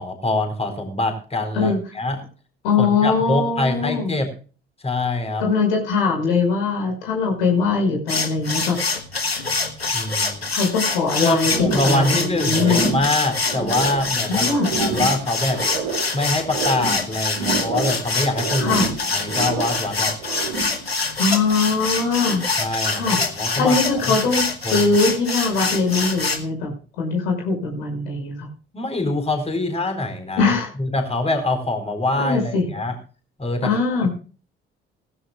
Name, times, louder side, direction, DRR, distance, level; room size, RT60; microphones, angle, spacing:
voice 1, 0.0-2.2 2.8-4.3 4.8-5.4 9.9-10.4 11.2-15.6 16.1-20.1 22.6-23.8 24.1-24.2 24.6-24.9 28.7-30.5 30.8-32.9 33.4-33.7 34.0-34.1, left 2 dB, 20° left, 5 dB, 4.5 m, -24 dB
voice 2, 2.6-4.2 5.4-8.8 10.5-11.5 11.8-12.9 14.3-14.7 18.6-18.9 21.2-22.5 22.9-28.5 30.4-30.7 32.2-32.7 33.6-34.1, left 4 dB, 70° left, 2 dB, 5.8 m, -21 dB
sound 1, 8.1-26.4, left 4 dB, 90° left, 1.2 m, -25 dB
sound 2, 11.5-12.2 12.5-14.1 14.5-16.1 16.4-18.1 18.3-19.9 20.2-20.8, right 4 dB, 80° right, 2.9 m, -28 dB
18.0 x 16.0 x 2.4 m, 0.38 s
figure-of-eight pair, 50°, 30 cm